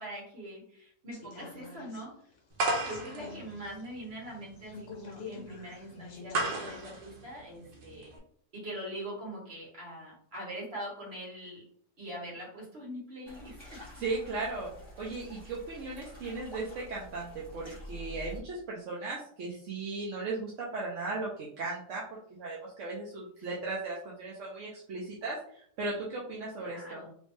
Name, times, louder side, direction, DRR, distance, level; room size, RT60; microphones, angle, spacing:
voice 1, 0.0-2.1 2.7-8.1 8.5-11.6 12.0-13.8 23.4-23.6 26.6-27.1, equal, 40° right, -4 dB, 1.8 m, -43 dB
sound 1, 1.1-6.9 7.2-7.3, left 4 dB, 50° left, 0.9 m, -47 dB
sound 2, 2.6-8.2, right 2 dB, 75° right, 1.4 m, -35 dB
sound 3, 13.2-18.4, equal, 20° left, 1.5 m, -47 dB
voice 2, 13.9-14.7 15.0-27.0, right 3 dB, 60° right, -4 dB, 0.9 m, -37 dB
3.1 x 3.1 x 3.1 m, 0.62 s
omnidirectional pair, 1.7 m